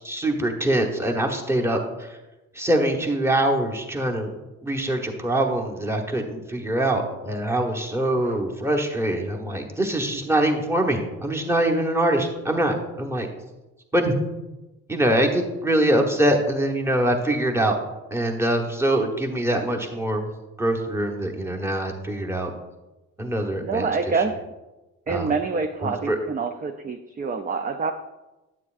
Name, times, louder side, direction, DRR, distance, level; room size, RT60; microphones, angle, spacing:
voice 1, 0.0-2.1 2.5-4.3 4.6-13.3 13.9-14.2 14.9-17.8 18.1-20.3 20.6-22.5 23.2-24.2 25.1-25.3 25.8-26.2, right 1 dB, 10° right, 1 dB, 1.1 m, -24 dB
voice 2, 23.6-24.3 25.1-27.9, right 4 dB, 25° right, 6 dB, 0.4 m, -26 dB
9.4 x 8.2 x 2.5 m, 1.1 s
cardioid pair, 95°, 33 cm